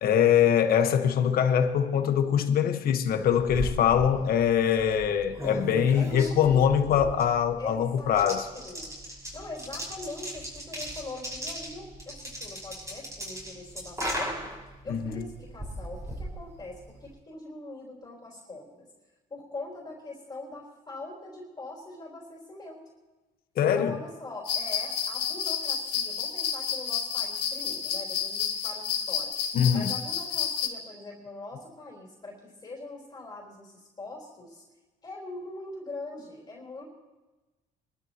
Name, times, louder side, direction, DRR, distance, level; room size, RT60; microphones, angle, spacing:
voice 1, 0.0-8.5 14.9-15.2 23.6-24.0 29.5-29.9, left 8 dB, 60° left, 1.3 m, -23 dB
sound 1, 3.1-17.1, equal, 20° right, 5.8 m, -38 dB
voice 2, 5.9-7.2 7.6-9.0 9.3-14.5 14.8-18.9 19.3-22.8 23.6-29.3 29.7-34.6 35.0-36.9, left 2 dB, 25° left, 4.0 m, -42 dB
sound 2, 24.5-30.7, left 8 dB, 85° left, 1.8 m, -30 dB
24.0 x 12.5 x 3.0 m
cardioid pair, 110°, 17 cm